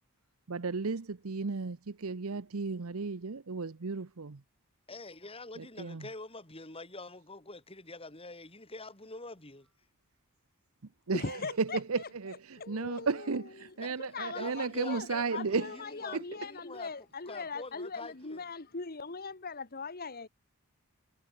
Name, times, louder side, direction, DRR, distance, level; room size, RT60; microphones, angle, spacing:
voice 1, 0.5-4.4 5.6-6.1 11.1-15.7 16.1-16.2, right 4 dB, 70° right, 0.8 m, -34 dB
voice 2, 4.9-9.7 13.8-13.9 14.3-16.9 17.3-18.4, left 3 dB, 25° left, 5.6 m, -45 dB
voice 3, 11.1-12.1 12.6-20.3, left 4 dB, 40° left, 1.4 m, -40 dB
head